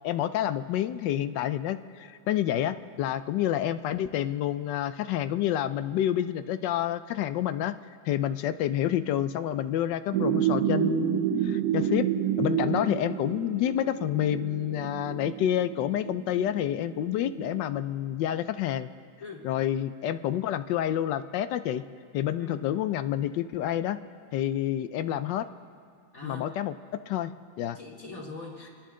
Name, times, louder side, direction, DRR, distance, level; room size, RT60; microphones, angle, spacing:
voice 1, 0.0-7.7 8.0-12.1 12.4-18.9 19.4-21.8 22.1-24.0 24.3-25.4 26.2-26.7 27.1-27.8, left 11 dB, 75° left, 12 dB, 1.2 m, -28 dB
sound 1, 10.1-17.7, right 9 dB, 65° right, 0.9 m, -29 dB
voice 2, 12.6-12.9 19.2-19.5 22.4-22.7 26.1-26.5 27.7-28.7, left 3 dB, 45° left, -5 dB, 2.9 m, -42 dB
29.0 x 11.0 x 3.8 m, 2.2 s
omnidirectional pair, 2.1 m